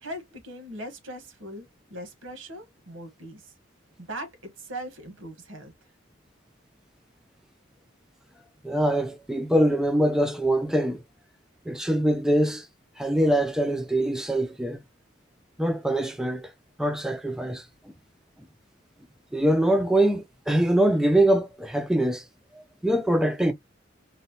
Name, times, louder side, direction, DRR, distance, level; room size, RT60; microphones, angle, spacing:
voice 1, 0.0-3.5 4.0-5.7, right 1 dB, 85° right, 1.2 m, -40 dB
voice 2, 8.6-11.0 11.7-12.7 13.0-14.8 15.6-16.5 16.8-17.6 19.3-22.2 22.8-23.5, right 1 dB, 5° right, 0.4 m, -23 dB
4.0 x 2.2 x 2.7 m
head